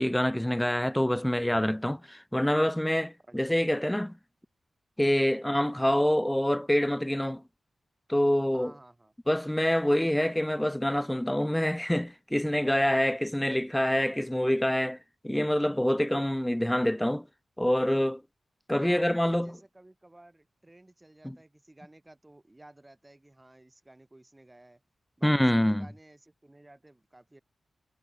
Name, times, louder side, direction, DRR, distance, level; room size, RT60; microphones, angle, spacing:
voice 1, 0.0-4.2 5.0-7.4 8.1-8.7 9.3-15.0 15.2-17.3 17.6-18.2 18.7-19.5 21.2-21.4 25.2-25.9, left 1 dB, 5° left, 0.4 m, -26 dB
voice 2, 3.2-3.6 8.5-9.1 18.7-24.8 25.2-27.4, right 1 dB, 15° right, 6.8 m, -54 dB
wide cardioid pair, 155°, 0 cm